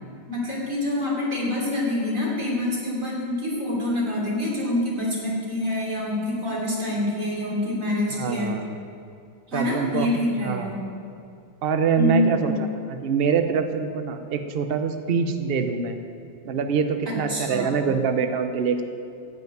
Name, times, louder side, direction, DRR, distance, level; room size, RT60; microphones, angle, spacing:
voice 1, 0.3-8.6 9.5-10.8 12.0-12.5 17.1-17.9, left 1 dB, 40° right, -4 dB, 3.6 m, -26 dB
voice 2, 8.1-8.8 9.5-10.7 11.6-16.0 16.4-18.8, right 6 dB, 90° right, 7 dB, 0.5 m, -25 dB
15.0 x 5.8 x 9.2 m, 2.6 s
omnidirectional pair, 2.1 m